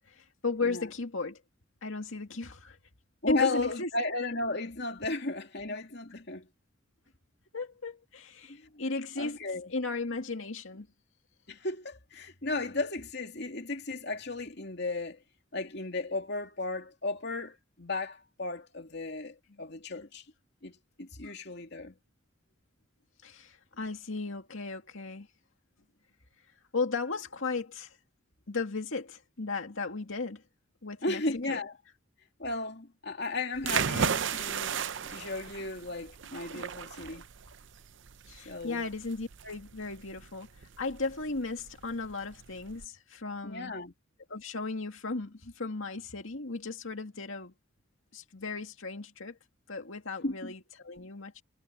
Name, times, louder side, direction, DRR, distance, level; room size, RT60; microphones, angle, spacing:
voice 1, 0.1-1.4 1.8-2.8 3.3-3.9 7.5-9.4 9.7-10.9 21.2-21.3 23.2-25.3 26.7-28.0 28.5-30.4 30.8-31.2 31.5-31.6 38.3-43.7 44.3-47.5 48.1-49.4 49.7-51.4, left 3 dB, 80° left, 2.1 m, -36 dB
voice 2, 3.2-6.5 8.5-8.8 9.2-9.7 11.5-15.2 15.5-20.2 20.6-22.0 31.0-31.7 32.4-37.3 38.4-38.8 43.4-43.9 50.2-50.5, left 2 dB, 55° left, 2.8 m, -35 dB
sound 1, 33.6-42.9, right 7 dB, 65° right, 0.6 m, -35 dB
head